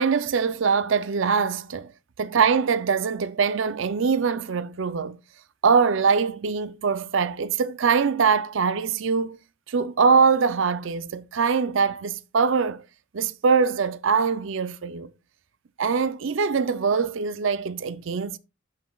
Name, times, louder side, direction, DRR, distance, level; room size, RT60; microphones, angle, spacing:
voice 1, 0.0-1.9 2.2-5.2 5.6-9.4 9.7-12.8 13.1-15.1 15.8-18.4, right 5 dB, 70° right, 0.5 m, -23 dB
11.5 x 5.8 x 2.3 m
head